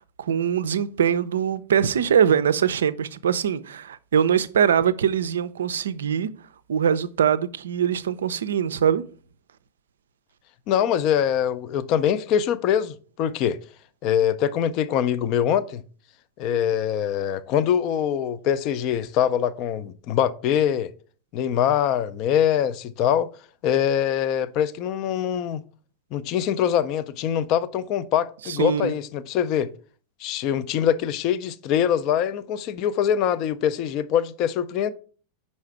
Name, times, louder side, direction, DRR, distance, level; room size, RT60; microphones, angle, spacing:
voice 1, 0.2-6.3 6.7-9.0 28.5-28.9, right 8 dB, 65° right, 0.4 m, -22 dB
voice 2, 10.7-13.6 14.0-15.8 16.4-20.9 21.3-23.3 23.6-25.6 26.1-29.7 30.2-34.9, left 9 dB, 40° left, 0.4 m, -23 dB
5.6 x 4.2 x 4.7 m
figure-of-eight pair, 90°, 0 cm